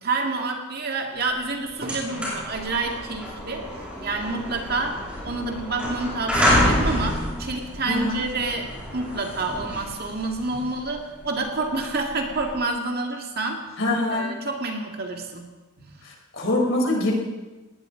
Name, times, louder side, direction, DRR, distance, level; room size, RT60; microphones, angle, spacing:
voice 1, 0.0-3.7 4.0-8.7 8.9-13.6 14.1-15.5 15.8-15.9, right 3 dB, 45° right, 2 dB, 2.1 m, -28 dB
sound 1, 1.3-1.4 1.7-12.6, equal, 5° right, 6.8 m, -28 dB
voice 2, 7.9-8.2 13.8-14.3 16.0-17.1, left 2 dB, 60° left, 0 dB, 4.2 m, -24 dB
20.5 x 17.5 x 3.9 m, 1.2 s
head